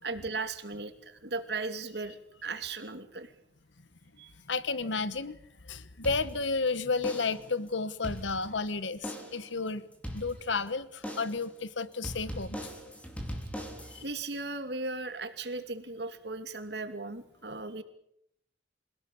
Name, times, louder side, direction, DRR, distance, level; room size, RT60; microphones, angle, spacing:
voice 1, 0.0-3.3 4.2-4.3 14.0-17.8, right 3 dB, 60° right, 8 dB, 2.8 m, -37 dB
voice 2, 4.5-5.4 5.7-9.8 10.1-12.6 13.9-14.0, left 4 dB, 80° left, 16 dB, 1.2 m, -32 dB
sound 1, 6.0-6.7 7.0-7.5 7.9-8.7 9.0-9.5 10.0-10.7 11.0-11.5 12.0-14.0, equal, 5° left, 3.8 m, -40 dB
28.0 x 17.5 x 8.7 m, 0.74 s
head